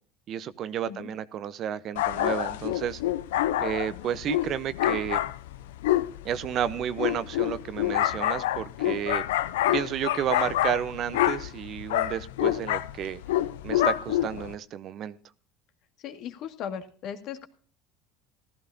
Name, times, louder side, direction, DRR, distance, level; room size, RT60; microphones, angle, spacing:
voice 1, 0.3-3.0 3.6-5.2 6.2-9.2 9.7-13.2 13.6-15.2, right 9 dB, 50° right, 0.8 m, -31 dB
sound 1, 2.0-14.6, left 13 dB, 90° left, 0.6 m, -27 dB
voice 2, 16.0-17.5, left 8 dB, 60° left, 2.0 m, -37 dB
15.0 x 13.5 x 2.7 m
supercardioid pair, 100°, 0 cm